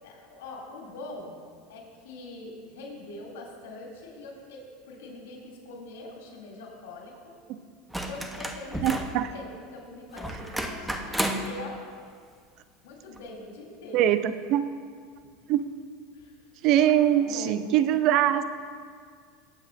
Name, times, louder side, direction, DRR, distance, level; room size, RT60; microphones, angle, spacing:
voice 1, 0.0-1.4 1.7-7.4 8.0-11.8 12.8-14.1 16.1-16.5 17.1-17.7, left 2 dB, 85° left, -2 dB, 2.8 m, -43 dB
sound 1, 7.9-9.2 10.2-11.5 13.2-13.3, right 1 dB, 5° right, 0.9 m, -31 dB
voice 2, 8.8-9.3 13.9-14.2 14.5-14.6 15.5-15.6 16.6-18.4, right 11 dB, 55° right, 11 dB, 0.5 m, -22 dB
20.0 x 8.4 x 2.6 m, 2.1 s
supercardioid pair, 110°, 0 cm